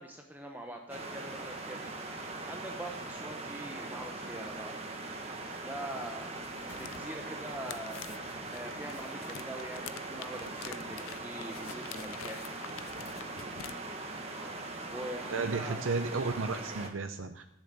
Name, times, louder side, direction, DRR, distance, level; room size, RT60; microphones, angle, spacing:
voice 1, 0.0-4.7 5.6-6.3 6.7-8.0 8.5-12.4 14.9-15.9, right 1 dB, 10° right, 2 dB, 0.8 m, -43 dB
sound 1, 0.9-16.9, right 2 dB, 30° right, 1.5 m, -41 dB
sound 2, 6.4-13.7, left 9 dB, 80° left, 0.5 m, -47 dB
voice 2, 15.3-17.4, right 4 dB, 70° right, 7 dB, 0.7 m, -33 dB
10.5 x 7.5 x 8.8 m, 0.82 s
head